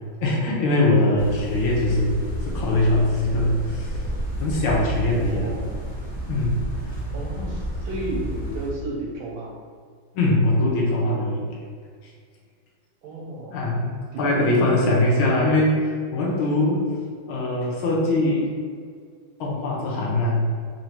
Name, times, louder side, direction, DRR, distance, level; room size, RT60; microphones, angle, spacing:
voice 1, 0.2-4.0 4.4-5.5 6.3-6.6 7.1-7.2 10.1-11.4 13.5-13.9 14.2-16.8 17.3-18.5 19.4-20.5, left 2 dB, 75° left, -3 dB, 1.7 m, -22 dB
sound 1, 1.2-8.7, right 1 dB, 10° right, 0.5 m, -31 dB
voice 2, 5.2-5.7 7.1-9.5 13.0-13.6 14.1-14.2 14.5-15.0, right 1 dB, 75° right, -3 dB, 1.7 m, -33 dB
4.0 x 2.7 x 4.4 m, 2.1 s
omnidirectional pair, 2.3 m